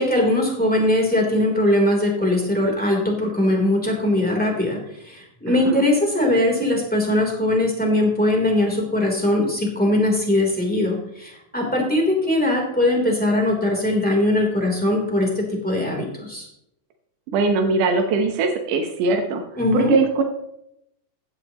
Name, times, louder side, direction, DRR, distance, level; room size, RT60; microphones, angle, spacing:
voice 1, 0.0-4.8 5.0-16.5 19.6-19.9, left 1 dB, 5° left, -1 dB, 3.1 m, -20 dB
voice 2, 5.5-5.9 17.3-19.4 19.7-20.2, right 4 dB, 85° right, 3 dB, 2.6 m, -21 dB
16.0 x 11.0 x 3.0 m, 0.79 s
omnidirectional pair, 3.6 m